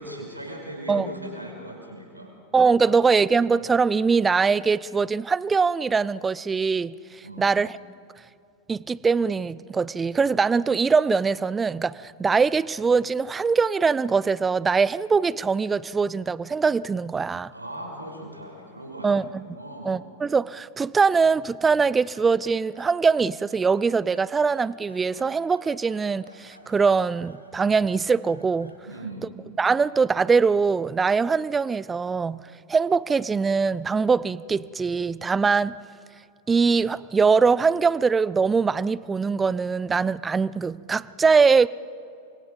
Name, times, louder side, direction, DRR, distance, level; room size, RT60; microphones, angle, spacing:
voice 1, 0.0-2.3 2.8-3.1 7.2-7.5 17.3-20.0 28.8-29.3, right 1 dB, 85° right, 5.7 m, -39 dB
voice 2, 2.5-7.7 8.7-17.5 19.0-19.4 19.8-28.7 29.6-32.4 32.7-35.7 36.5-41.7, right 5 dB, 15° right, 0.5 m, -22 dB
sound 1, 22.1-28.9, left 1 dB, 85° left, 2.0 m, -53 dB
29.5 x 25.0 x 5.3 m
figure-of-eight pair, 90°, 0 cm